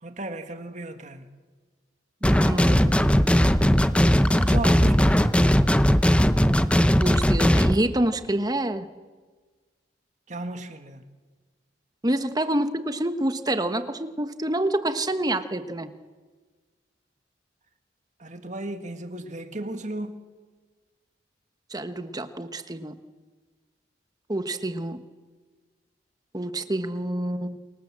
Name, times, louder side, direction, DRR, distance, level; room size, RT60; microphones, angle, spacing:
voice 1, 0.0-1.3 4.4-5.4 10.3-11.0 18.2-20.2, right 2 dB, 40° right, 2.0 m, -34 dB
sound 1, 2.2-7.8, equal, 5° left, 0.8 m, -19 dB
voice 2, 2.2-3.0 7.0-8.9 12.0-15.9 21.7-22.9 24.3-25.0 26.3-27.6, right 1 dB, 20° right, 1.3 m, -27 dB
28.0 x 25.0 x 7.6 m
head